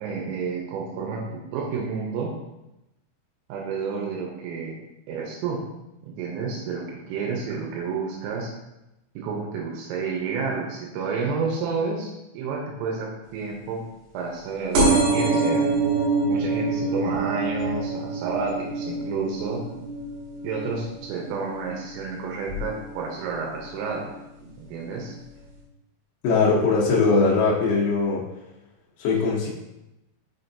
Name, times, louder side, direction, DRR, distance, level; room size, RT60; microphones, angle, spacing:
voice 1, 0.0-2.4 3.5-4.7 5.1-5.7 6.0-8.5 9.2-13.8 14.1-15.7 16.3-19.7 20.4-24.1 24.6-25.2, right 5 dB, 85° right, -1 dB, 3.5 m, -30 dB
sound 1, 14.7-22.0 22.5-22.9 23.8-23.9 24.1-24.2 24.4-24.5, right 3 dB, 70° right, 3.6 m, -25 dB
voice 2, 26.2-28.2 29.0-29.5, left 4 dB, 85° left, -4 dB, 2.2 m, -20 dB
6.2 x 5.9 x 2.7 m, 0.93 s
omnidirectional pair, 5.7 m